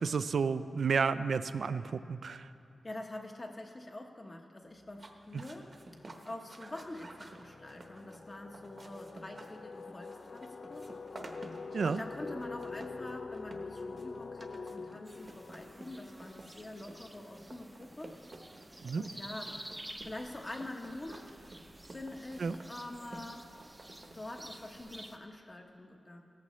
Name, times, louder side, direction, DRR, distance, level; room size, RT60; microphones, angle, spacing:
voice 1, 0.0-2.5 5.3-5.4 11.7-12.0 18.8-19.0 22.4-22.5, right 5 dB, 70° right, 13 dB, 0.4 m, -31 dB
voice 2, 2.8-5.8 6.2-11.1 11.8-18.2 19.0-19.6 20.0-21.3 21.9-23.5 24.1-26.2, left 1 dB, 30° left, 2 dB, 1.0 m, -45 dB
sound 1, 4.8-5.0 5.4-16.9, left 4 dB, 50° left, 0.3 m, -46 dB
sound 2, 4.9-24.8, right 2 dB, 40° right, 1.0 m, -53 dB
sound 3, 15.1-25.2, right 1 dB, 15° right, 0.7 m, -50 dB
17.5 x 14.5 x 3.2 m, 2.8 s
wide cardioid pair, 130°, 0 cm